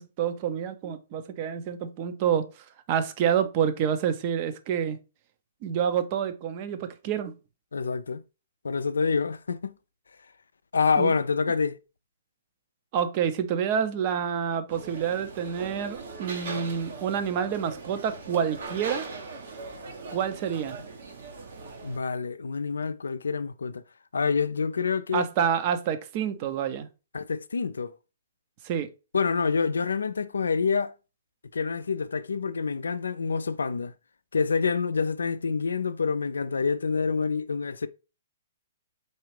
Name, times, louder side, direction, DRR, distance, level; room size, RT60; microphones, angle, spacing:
voice 1, 0.0-5.0 5.6-7.3 11.0-11.1 12.9-19.1 20.1-20.8 25.1-26.9 28.6-28.9, right 8 dB, 40° right, 0.5 m, -28 dB
voice 2, 7.7-8.2 8.6-9.7 10.7-11.8 21.8-23.8 24.1-25.3 27.1-27.9 29.1-30.9 31.5-33.9 34.3-37.9, left 5 dB, 85° left, 0.3 m, -27 dB
sound 1, 14.7-22.0, right 3 dB, 65° right, 0.9 m, -40 dB
4.1 x 2.4 x 3.2 m
hypercardioid pair, 130°, 0 cm